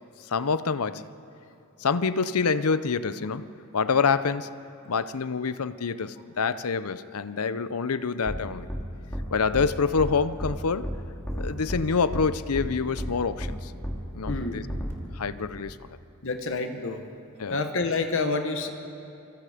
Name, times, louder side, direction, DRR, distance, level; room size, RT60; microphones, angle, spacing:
voice 1, 0.3-1.0 1.8-3.5 3.7-4.5 4.9-8.7 9.3-10.9 11.3-13.7 14.1-14.6 15.1-15.9 17.4-17.6, left 5 dB, 90° left, 14 dB, 0.7 m, -26 dB
sound 1, 8.3-8.4 8.7-8.8 9.1-9.2 9.5-9.7 10.0-10.1 10.4-10.5 10.8-11.0 11.3-11.8 12.1-12.2 12.5-12.7 13.0-13.1 13.4-13.5 13.8-14.0 14.3-14.4 14.7-14.9, equal, 10° left, 2.4 m, -31 dB
voice 2, 14.3-14.6 16.2-17.0 17.5-18.7, left 3 dB, 65° left, 6 dB, 1.3 m, -28 dB
26.0 x 22.5 x 5.0 m, 2.8 s
head